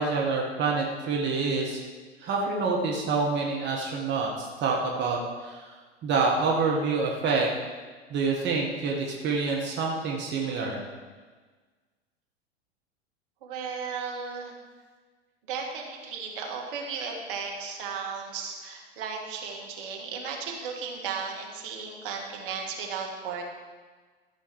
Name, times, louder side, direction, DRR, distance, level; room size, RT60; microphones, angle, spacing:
voice 1, 0.0-1.8 2.2-5.7 6.0-7.5 8.1-10.8, right 4 dB, 35° right, -1 dB, 1.7 m, -27 dB
voice 2, 13.4-14.5 15.5-23.4, right 5 dB, 55° right, 1 dB, 2.1 m, -35 dB
14.0 x 6.9 x 4.8 m, 1.4 s
figure-of-eight pair, 85°, 33 cm